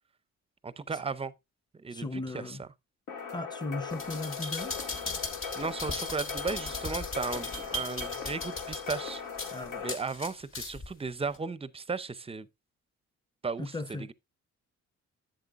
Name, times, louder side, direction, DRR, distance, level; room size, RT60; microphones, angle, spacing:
voice 1, 0.6-1.3 1.7-2.7 5.5-9.2 9.8-12.5 13.4-13.7, right 4 dB, 20° right, 0.5 m, -35 dB
voice 2, 1.9-2.6 3.3-4.7 9.5-9.9 13.6-14.1, left 2 dB, 15° left, 0.8 m, -37 dB
sound 1, 3.1-9.9, left 6 dB, 85° left, 2.0 m, -39 dB
sound 2, 3.9-10.9 11.3-11.4, left 2 dB, 45° left, 1.6 m, -38 dB
11.0 x 7.7 x 2.4 m
cardioid pair, 90°, 30 cm